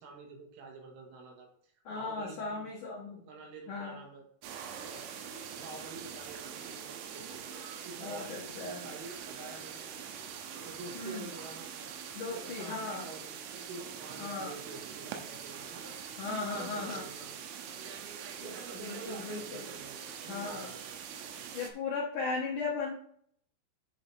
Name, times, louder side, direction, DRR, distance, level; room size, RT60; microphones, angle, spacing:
voice 1, 0.0-2.7 3.2-4.2 4.8-5.2 5.5-7.4 7.8-10.1 10.7-11.9 12.3-13.4 13.7-16.0 16.5-17.4 18.4-21.0, right 3 dB, 75° right, 0 dB, 4.0 m, -48 dB
voice 2, 1.8-3.2 3.7-4.0 8.0-8.8 10.9-11.3 12.1-13.1 14.2-14.5 16.2-17.0 18.7-19.6 20.3-20.7 21.5-22.9, left 4 dB, 75° left, -5 dB, 1.8 m, -37 dB
sound 1, 4.4-21.7, right 7 dB, 90° right, 3.5 m, -43 dB
10.0 x 4.0 x 4.7 m, 0.65 s
omnidirectional pair, 5.9 m